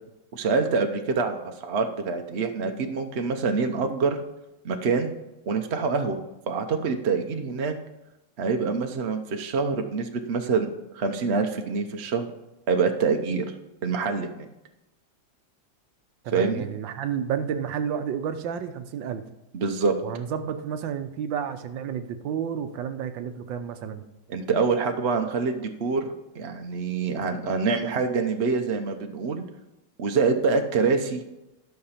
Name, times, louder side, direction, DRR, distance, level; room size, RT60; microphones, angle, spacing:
voice 1, 0.3-4.2 4.6-5.1 5.5-6.2 6.5-7.7 8.4-10.7 10.9-12.3 12.7-13.5 13.8-14.5 16.3-16.7 19.5-20.0 24.3-26.1 26.3-29.4 30.0-31.2, right 4 dB, 50° right, 5 dB, 0.8 m, -25 dB
voice 2, 16.2-19.2 20.0-24.1, right 8 dB, 80° right, 9 dB, 1.5 m, -31 dB
12.0 x 5.9 x 5.6 m, 0.97 s
omnidirectional pair, 2.0 m